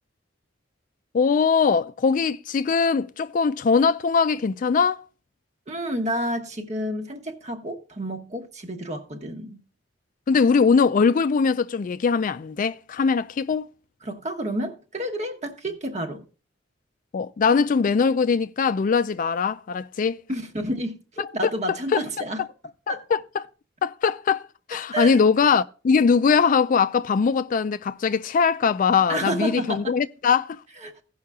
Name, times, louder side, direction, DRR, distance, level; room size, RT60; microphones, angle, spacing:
voice 1, 1.1-5.1 10.3-13.7 17.1-20.2 21.2-21.3 21.7-22.0 22.9-23.5 23.8-30.6, left 5 dB, 45° left, 0.4 m, -21 dB
voice 2, 5.7-9.6 14.0-16.3 20.3-22.4 22.9-23.0 24.7-25.2 29.1-29.9 30.8-31.0, right 1 dB, 40° right, 1.2 m, -30 dB
16.0 x 5.6 x 3.5 m
head